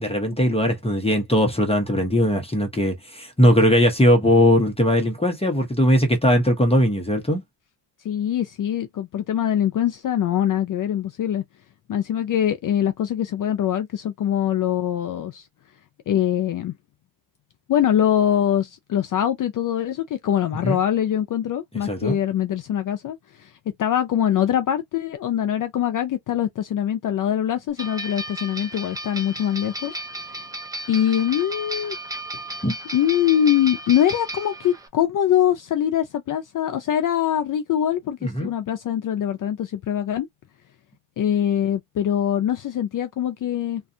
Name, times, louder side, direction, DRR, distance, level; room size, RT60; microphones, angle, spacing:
voice 1, 0.0-7.4 20.6-20.8 21.8-22.2 32.6-32.8 38.2-38.5, equal, 15° left, 0.8 m, -19 dB
voice 2, 8.0-11.4 11.9-15.5 16.1-16.7 17.7-23.5 23.8-30.0 30.9-32.0 32.9-40.3 41.2-43.8, left 10 dB, 45° left, 0.4 m, -23 dB
sound 1, 27.8-34.9, right 1 dB, 10° right, 0.5 m, -34 dB
2.4 x 2.3 x 2.6 m
cardioid pair, 90°, 45 cm